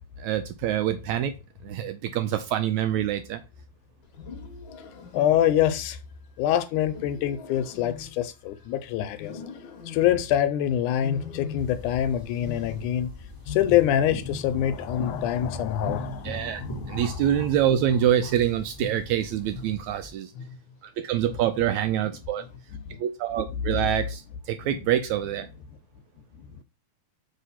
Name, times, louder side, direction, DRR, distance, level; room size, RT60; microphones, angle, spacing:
voice 1, 0.2-1.3 1.6-3.4 16.2-16.6 16.9-20.3 21.0-22.4 23.0-24.2 24.5-25.5, right 11 dB, 80° right, 1.7 m, -25 dB
Wild animals, 4.0-5.8 6.8-8.7 9.2-10.4 11.0-12.0 12.3-14.8 15.0-20.0 20.3-20.8 21.2-21.6 22.4-22.8, left 5 dB, 55° left, 1.5 m, -41 dB
voice 2, 5.1-6.0 6.4-9.4 9.9-13.1 13.5-16.6 16.9-17.5 22.9-23.0 23.7-23.9 26.4-26.6, left 11 dB, 80° left, 2.0 m, -25 dB
sound 1, 11.6-20.1, left 1 dB, 10° left, 2.2 m, -39 dB
6.4 x 3.8 x 5.7 m
omnidirectional pair, 3.7 m